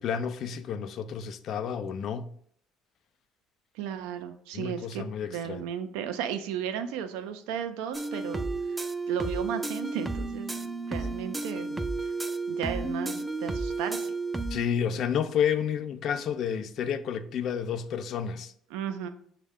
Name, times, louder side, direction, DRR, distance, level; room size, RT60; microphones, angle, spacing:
voice 1, 0.0-2.3 4.5-5.7 14.5-18.5, left 8 dB, 60° left, 0.4 m, -30 dB
voice 2, 3.8-8.8 9.1-10.5 10.9-12.1 12.5-14.1 18.7-19.1, right 8 dB, 80° right, 0.4 m, -35 dB
sound 1, 7.9-14.6, right 3 dB, 15° right, 0.4 m, -32 dB
6.3 x 2.2 x 3.5 m
supercardioid pair, 70°, 0 cm